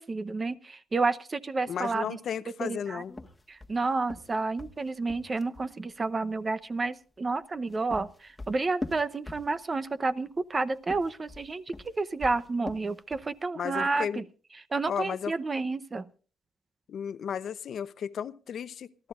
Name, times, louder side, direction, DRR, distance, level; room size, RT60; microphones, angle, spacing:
voice 1, 0.0-2.2 2.6-3.0 3.5-14.2 14.7-16.0, right 3 dB, 30° right, 14 dB, 0.8 m, -30 dB
voice 2, 1.7-3.1 13.5-14.2 14.9-15.3 16.9-19.1, left 8 dB, 60° left, 15 dB, 0.8 m, -34 dB
sound 1, 3.1-5.7 7.4-9.9 10.8-13.4, left 2 dB, 15° left, 1.4 m, -42 dB
28.0 x 12.0 x 2.5 m, 0.38 s
cardioid pair, 90°, 0 cm